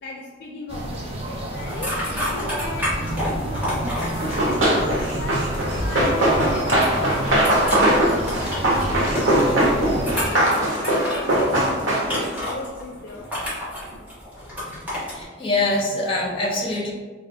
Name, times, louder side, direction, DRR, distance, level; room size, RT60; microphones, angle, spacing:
voice 1, 0.0-4.1 4.4-5.5 5.8-10.4 10.8-13.3, left 2 dB, 60° left, 0 dB, 0.4 m, -36 dB
sound 1, 0.7-10.2, right 1 dB, 30° right, 0.5 m, -30 dB
sound 2, 1.5-15.2, equal, 10° right, 1.4 m, -31 dB
Run, 4.2-12.4, right 1 dB, 90° right, 0.9 m, -21 dB
voice 2, 14.8-16.9, left 2 dB, 30° left, -2 dB, 0.7 m, -24 dB
4.0 x 2.4 x 2.6 m, 1.4 s
head